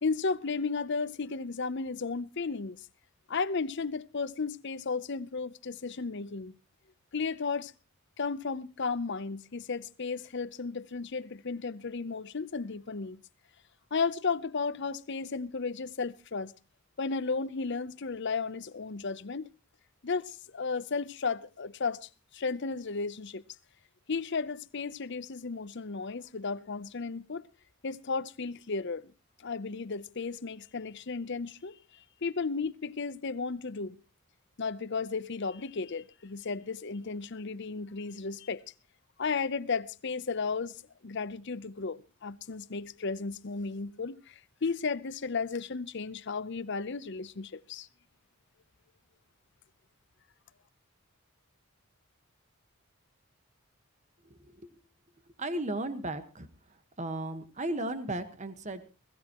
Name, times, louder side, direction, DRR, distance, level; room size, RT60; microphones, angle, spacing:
voice 1, 0.0-2.9 3.3-6.5 7.1-7.7 8.2-13.2 13.9-16.5 17.0-19.5 20.0-23.4 24.1-27.5 27.8-29.1 29.4-31.8 32.2-34.0 34.6-38.6 39.2-47.9, left 4 dB, 55° left, 0.7 m, -34 dB
voice 2, 54.3-54.7 55.4-56.5 57.0-58.8, right 1 dB, 35° right, 1.4 m, -35 dB
21.0 x 15.5 x 3.0 m
head